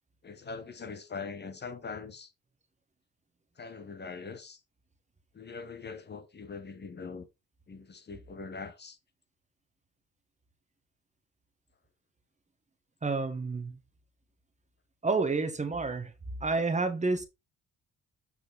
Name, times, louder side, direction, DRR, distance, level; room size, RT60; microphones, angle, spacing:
voice 1, 0.2-2.3 3.6-4.6 5.3-7.3 7.7-9.0, left 4 dB, 35° left, 1.1 m, -42 dB
voice 2, 13.0-13.8 15.0-16.1 16.4-17.3, right 3 dB, 25° right, 1.3 m, -29 dB
7.9 x 4.4 x 3.9 m
cardioid pair, 90°, 30 cm